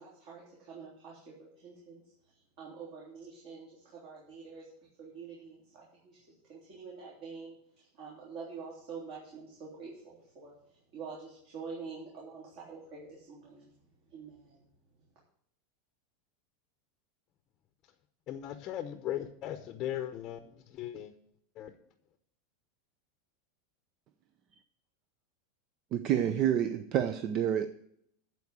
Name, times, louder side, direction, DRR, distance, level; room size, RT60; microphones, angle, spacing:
voice 1, 0.0-4.6 5.0-13.7 14.1-14.7, right 5 dB, 55° right, 3.6 m, -47 dB
voice 2, 18.3-20.4 20.7-21.1 21.6-21.7, left 11 dB, 35° left, 0.8 m, -37 dB
voice 3, 25.9-27.7, right 10 dB, 35° right, 0.5 m, -28 dB
12.0 x 4.7 x 8.2 m
supercardioid pair, 155°, 0 cm